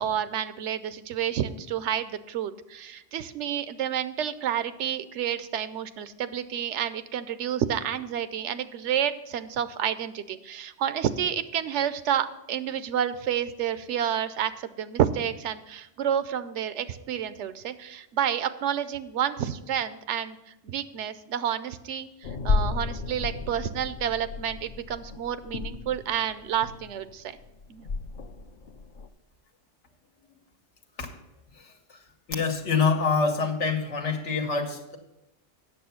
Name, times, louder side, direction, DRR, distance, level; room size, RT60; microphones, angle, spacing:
voice 1, 0.0-20.4 20.6-27.4 27.7-27.9, right 9 dB, 80° right, 0.9 m, -29 dB
sound 1, 22.2-29.1, left 4 dB, 55° left, 0.6 m, -33 dB
voice 2, 32.3-35.0, left 5 dB, 80° left, 1.5 m, -25 dB
8.6 x 6.9 x 5.7 m
omnidirectional pair, 1.2 m